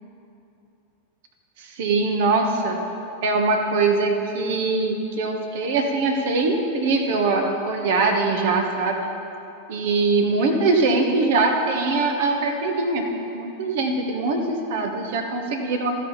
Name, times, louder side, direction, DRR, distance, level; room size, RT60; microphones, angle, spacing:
voice 1, 1.6-2.8 3.2-9.0 9.7-13.1 13.3-16.0, right 3 dB, 50° right, 3 dB, 1.3 m, -22 dB
15.0 x 5.3 x 5.6 m, 2.8 s
figure-of-eight pair, 90°, 0 cm